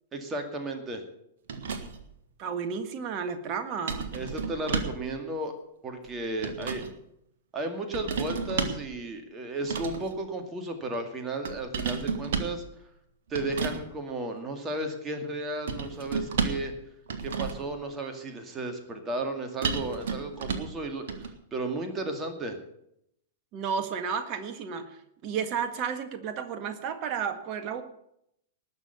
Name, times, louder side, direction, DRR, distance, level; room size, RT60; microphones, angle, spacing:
voice 1, 0.1-1.0 4.1-5.5 5.8-6.8 7.5-12.6 13.3-16.7 17.2-22.6, right 2 dB, 20° right, 4 dB, 2.1 m, -34 dB
sound 1, 1.5-2.1 3.9-5.1 6.1-6.9 7.9-8.9 9.6-10.1 11.5-12.6 13.3-13.8 15.7-16.7 17.1-17.7 19.6-20.8 21.1-21.3, right 5 dB, 60° right, 1.6 m, -32 dB
voice 2, 2.4-4.1 23.5-27.8, right 6 dB, 40° right, 8 dB, 1.7 m, -32 dB
19.5 x 6.7 x 7.0 m, 0.76 s
figure-of-eight pair, 100°, 0 cm